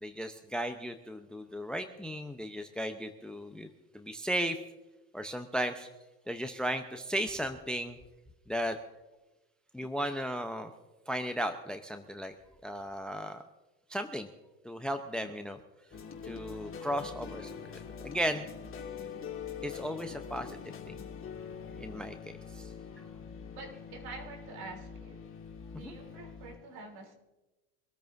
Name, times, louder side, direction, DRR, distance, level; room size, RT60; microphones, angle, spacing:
voice 1, 0.0-3.7 3.9-4.6 5.1-5.9 6.3-8.0 8.5-8.8 9.7-10.7 11.1-12.3 12.6-13.4 13.9-14.3 14.6-15.6 16.2-18.5 19.6-21.0 21.8-23.1 25.7-25.9, equal, ahead, 8 dB, 0.8 m, -36 dB
sound 1, 15.9-26.6, left 7 dB, 25° left, 2.6 m, -44 dB
voice 2, 23.5-25.3 25.8-27.1, right 3 dB, 50° right, 2 dB, 3.5 m, -47 dB
24.5 x 13.5 x 2.7 m, 1.1 s
hypercardioid pair, 90°, 47 cm